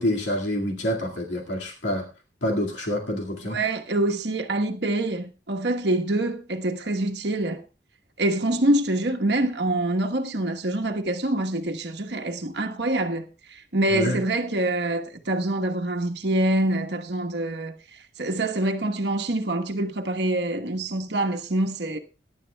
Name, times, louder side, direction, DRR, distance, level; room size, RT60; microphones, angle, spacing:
voice 1, 0.0-2.1 2.4-3.6 13.9-14.2, equal, 85° left, 2.1 m, -27 dB
voice 2, 3.5-7.6 8.2-22.0, right 1 dB, 70° right, 1.2 m, -25 dB
21.5 x 11.0 x 2.3 m
head